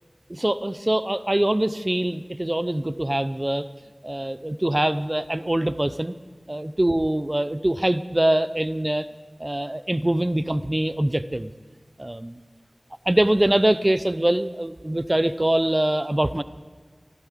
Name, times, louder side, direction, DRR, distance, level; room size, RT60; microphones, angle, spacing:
voice 1, 0.3-3.7 4.0-6.1 6.5-9.1 9.4-11.5 12.0-12.3 13.1-16.4, right 1 dB, 30° right, 14 dB, 0.6 m, -23 dB
14.5 x 12.0 x 7.4 m, 1.5 s
wide cardioid pair, 45°, 0 cm